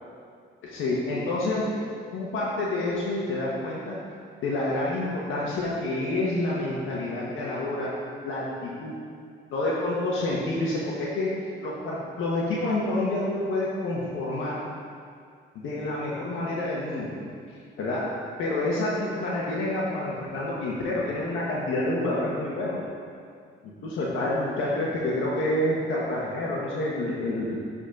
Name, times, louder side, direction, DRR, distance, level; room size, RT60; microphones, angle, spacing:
voice 1, 0.6-1.6 2.1-4.0 4.4-7.9 8.2-8.9 9.5-11.3 11.6-14.5 15.5-17.1 17.8-18.0 18.4-22.8 23.8-27.6, left 2 dB, 80° left, -6 dB, 1.4 m, -28 dB
10.0 x 4.3 x 5.2 m, 2.2 s
cardioid pair, 90°, 20 cm